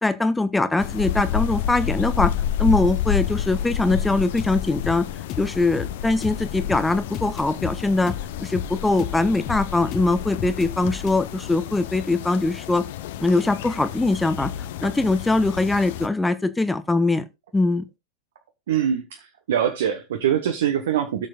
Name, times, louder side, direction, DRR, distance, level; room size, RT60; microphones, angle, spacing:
voice 1, 0.0-2.3 2.6-5.1 5.4-8.1 8.4-12.8 13.2-14.5 14.8-17.3 17.5-17.8, left 2 dB, 10° left, 0.8 m, -22 dB
sound 1, 0.8-16.1, left 10 dB, 55° left, 0.7 m, -30 dB
sound 2, 3.9-11.2, left 9 dB, 35° left, 1.1 m, -34 dB
voice 2, 18.7-21.3, right 9 dB, 60° right, 1.0 m, -23 dB
17.5 x 6.5 x 2.3 m
figure-of-eight pair, 90°, 0 cm